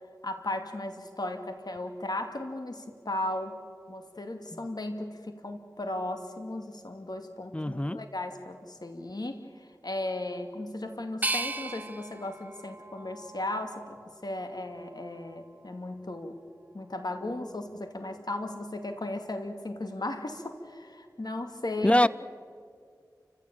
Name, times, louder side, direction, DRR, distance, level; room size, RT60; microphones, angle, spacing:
voice 1, 0.2-3.6 3.9-16.4 16.7-22.1, left 1 dB, 65° left, 6 dB, 2.6 m, -36 dB
voice 2, 7.5-8.0 21.8-22.1, left 1 dB, 15° left, 19 dB, 0.6 m, -24 dB
sound 1, 11.2-14.1 14.7-15.5, right 2 dB, 20° right, 1.2 m, -37 dB
29.5 x 15.5 x 9.0 m, 2.1 s
wide cardioid pair, 40°, 7 cm